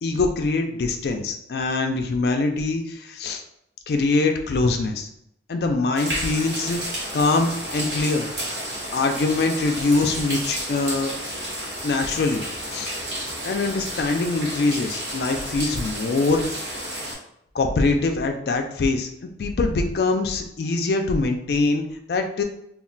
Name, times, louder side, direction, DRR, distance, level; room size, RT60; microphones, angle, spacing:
voice 1, 0.0-3.4 3.9-5.1 5.5-6.8 7.1-8.3 8.9-11.1 11.8-12.5 12.7-12.9 13.4-16.6 17.5-22.4, left 3 dB, 60° left, 5 dB, 0.3 m, -23 dB
sound 1, 6.0-17.1, right 1 dB, 80° right, 0.9 m, -31 dB
2.3 x 2.1 x 3.7 m, 0.76 s
head